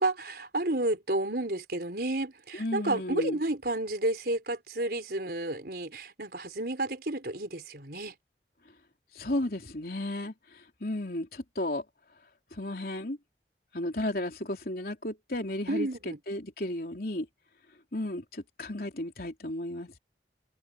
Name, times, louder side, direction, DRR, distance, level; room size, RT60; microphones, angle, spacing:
voice 1, 0.0-8.1 15.7-16.2, right 2 dB, 60° right, 4.6 m, -31 dB
voice 2, 2.5-3.4 9.1-11.8 12.5-13.2 13.7-17.3 17.9-20.0, left 1 dB, 55° left, 3.7 m, -34 dB
head